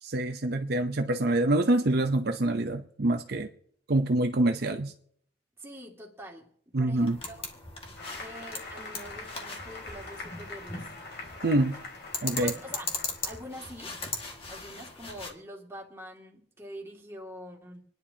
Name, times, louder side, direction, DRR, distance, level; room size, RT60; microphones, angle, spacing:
voice 1, 0.0-3.5 3.9-4.9 6.7-7.2 11.4-11.8 12.2-12.5, right 1 dB, 60° right, 6 dB, 0.7 m, -26 dB
voice 2, 5.6-7.4 8.2-10.9 12.4-12.9 13.2-13.9 14.5-17.9, equal, 15° right, -1 dB, 2.3 m, -44 dB
sound 1, 7.0-15.3, left 3 dB, 30° left, 1.9 m, -39 dB
Applause, 8.0-13.6, left 3 dB, 60° left, 3.2 m, -44 dB
27.5 x 10.5 x 2.8 m, 0.64 s
head